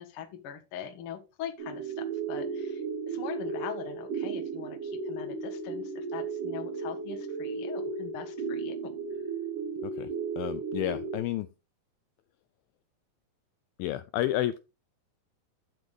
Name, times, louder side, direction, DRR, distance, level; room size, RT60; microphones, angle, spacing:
voice 1, 0.0-9.2, left 8 dB, 65° left, 7 dB, 1.4 m, -42 dB
sound 1, 1.6-11.2, right 4 dB, 55° right, 4.3 m, -35 dB
voice 2, 10.4-11.5 13.8-14.6, left 14 dB, 85° left, 13 dB, 2.1 m, -31 dB
9.7 x 7.8 x 3.3 m, 0.28 s
omnidirectional pair, 4.6 m